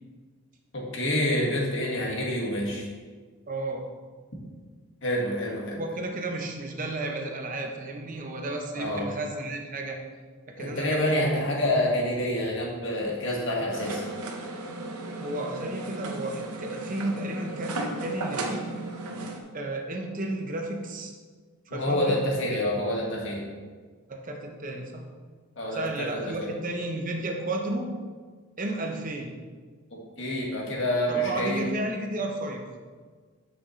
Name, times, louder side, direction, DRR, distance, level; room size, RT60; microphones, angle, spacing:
voice 1, 0.7-2.9 5.0-5.8 8.8-9.1 10.6-14.1 21.7-23.4 25.6-26.2 30.2-31.6, left 1 dB, 55° left, -3 dB, 1.7 m, -27 dB
voice 2, 3.5-3.8 5.7-10.0 10.5-11.2 15.2-18.7 19.5-21.2 21.7-22.2 22.5-22.6 24.1-25.0 25.7-27.9 28.6-29.4 31.1-32.6, right 2 dB, 35° right, 2 dB, 0.8 m, -33 dB
Making Tea, 13.7-19.4, right 2 dB, 85° right, 0.9 m, -35 dB
8.9 x 6.1 x 3.2 m, 1.5 s
head